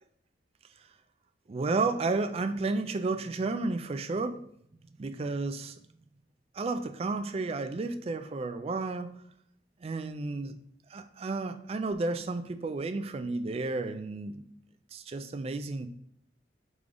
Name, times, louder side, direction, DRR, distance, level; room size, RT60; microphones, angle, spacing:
voice 1, 1.5-4.4 5.0-5.8 6.5-9.1 9.8-10.6 10.9-14.4 14.9-15.9, right 3 dB, 35° right, 0.3 m, -32 dB
3.7 x 3.4 x 3.6 m
head